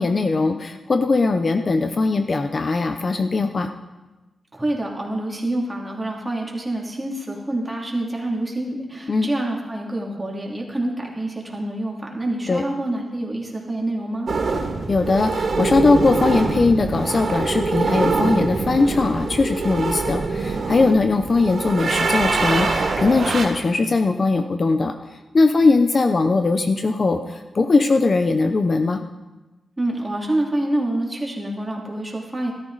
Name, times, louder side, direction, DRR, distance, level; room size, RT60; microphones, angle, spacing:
voice 1, 0.0-3.7 9.1-9.3 12.5-12.6 14.9-24.9 25.3-29.0, left 3 dB, 45° left, 7 dB, 0.7 m, -20 dB
voice 2, 4.5-14.3 29.8-32.5, right 1 dB, 15° right, -2 dB, 2.8 m, -27 dB
sound 1, 14.3-23.5, right 3 dB, 60° right, 1.6 m, -24 dB
14.0 x 13.0 x 4.0 m, 1.1 s
wide cardioid pair, 95°, 0 cm